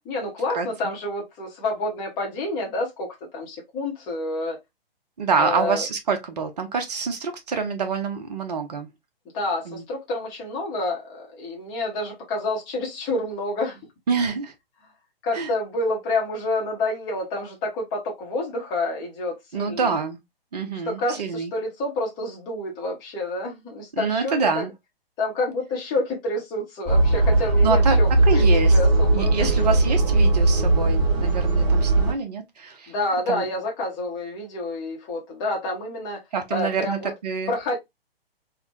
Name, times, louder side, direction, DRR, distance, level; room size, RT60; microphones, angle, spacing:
voice 1, 0.1-4.6 5.4-5.8 9.3-13.9 15.2-20.0 20.8-24.7 25.2-29.5 32.9-36.2 36.5-37.1 37.5-37.8, left 2 dB, 15° left, 0.7 m, -28 dB
voice 2, 5.2-8.9 9.7-9.8 14.1-14.5 15.3-15.5 19.5-20.2 20.5-21.5 23.9-24.7 27.6-28.0 28.3-28.8 29.1-32.9 33.3-33.4 36.3-37.5, right 5 dB, 45° right, 0.7 m, -26 dB
sound 1, 26.9-32.1, right 2 dB, 15° right, 1.2 m, -18 dB
3.3 x 2.1 x 2.7 m
figure-of-eight pair, 130°, 30 cm